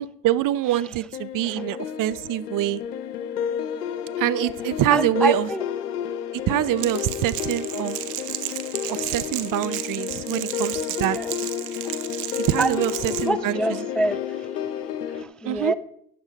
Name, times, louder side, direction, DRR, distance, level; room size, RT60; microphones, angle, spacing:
voice 1, 0.0-2.8 4.2-5.5 6.5-8.0 8.9-11.2 12.5-13.6 15.4-15.7, right 14 dB, 45° right, 17 dB, 0.7 m, -25 dB
sound 1, 1.1-15.2, left 8 dB, 90° left, 1.1 m, -31 dB
voice 2, 4.9-5.6 11.1-11.3 11.8-12.0 12.6-12.8 13.2-14.5 15.1-15.7, right 1 dB, ahead, 14 dB, 0.3 m, -26 dB
Crackle, 6.8-13.3, right 14 dB, 80° right, 1.3 m, -33 dB
14.0 x 8.9 x 5.2 m, 0.71 s
hypercardioid pair, 80°, 46 cm